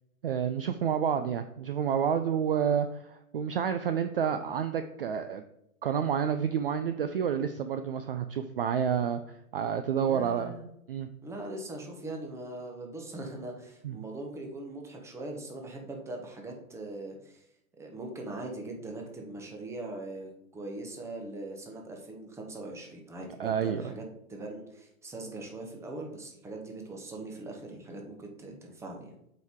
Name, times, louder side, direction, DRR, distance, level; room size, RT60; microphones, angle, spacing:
voice 1, 0.2-5.4 5.8-10.5 10.9-11.1 13.8-13.9 23.4-23.9, right 8 dB, 45° right, 9 dB, 0.4 m, -29 dB
voice 2, 10.1-10.7 11.2-17.4 17.8-24.0 24.3-29.1, right 2 dB, 5° right, 1 dB, 0.9 m, -41 dB
7.6 x 4.7 x 3.6 m, 0.80 s
hypercardioid pair, 125°, 44 cm